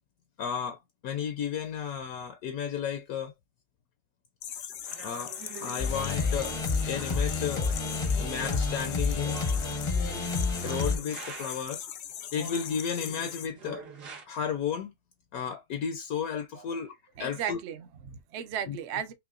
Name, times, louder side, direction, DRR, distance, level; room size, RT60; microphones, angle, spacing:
voice 1, 0.4-3.3 4.5-4.6 5.0-5.3 5.6-6.5 6.9-7.7 7.9-9.4 10.6-11.8 12.3-13.9 14.3-14.9 15.3-17.6 18.7-18.8, left 7 dB, 70° left, 1.0 m, -33 dB
sound 1, 4.4-13.5, left 10 dB, 85° left, 0.5 m, -40 dB
sound 2, 4.8-11.8 12.3-14.2, right 4 dB, 85° right, 1.7 m, -46 dB
sound 3, 5.8-11.0, left 4 dB, 35° left, 0.5 m, -29 dB
voice 2, 17.2-19.1, right 9 dB, 65° right, 0.7 m, -35 dB
5.6 x 2.2 x 2.4 m
omnidirectional pair, 1.7 m